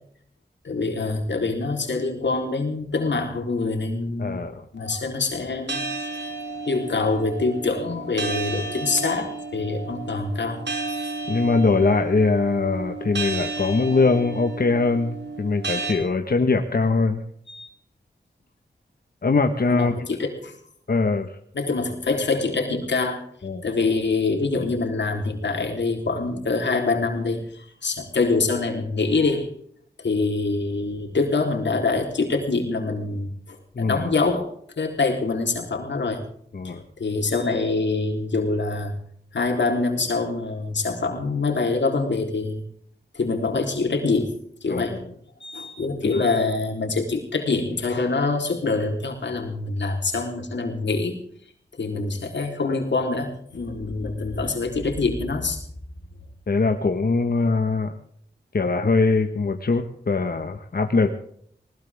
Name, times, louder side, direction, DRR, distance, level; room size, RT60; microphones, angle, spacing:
voice 1, 0.6-4.4 4.7-5.8 6.7-10.7 17.5-17.7 19.7-20.6 21.5-23.2 23.6-29.5 30.0-36.2 36.6-38.9 39.3-42.6 43.1-44.3 44.6-45.0 45.4-51.2 51.8-55.6, left 3 dB, 85° left, 3 dB, 3.8 m, -25 dB
voice 2, 4.2-4.6 11.3-17.2 19.2-19.9 20.9-21.3 23.4-23.6 33.7-34.1 36.5-36.8 44.7-45.0 46.1-46.2 56.5-57.9 58.5-61.1, left 3 dB, 60° left, 5 dB, 1.5 m, -22 dB
sound 1, 5.7-15.9, right 3 dB, 75° right, 3.1 m, -32 dB
20.0 x 19.5 x 3.6 m, 0.65 s
wide cardioid pair, 70°, 18 cm